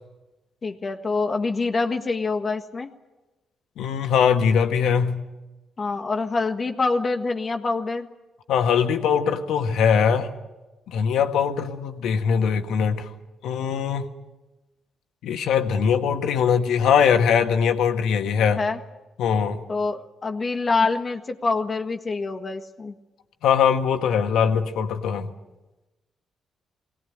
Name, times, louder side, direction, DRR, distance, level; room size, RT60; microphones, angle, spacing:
voice 1, 0.6-2.9 5.8-8.1 18.6-18.8 19.7-22.9, left 3 dB, 40° left, 5 dB, 1.6 m, -25 dB
voice 2, 3.8-5.2 8.5-10.3 10.9-13.1 13.4-14.1 15.2-18.6 19.2-19.6 23.4-25.3, left 7 dB, 80° left, 6 dB, 1.5 m, -21 dB
21.0 x 17.5 x 8.8 m, 1.1 s
supercardioid pair, 55°, 0 cm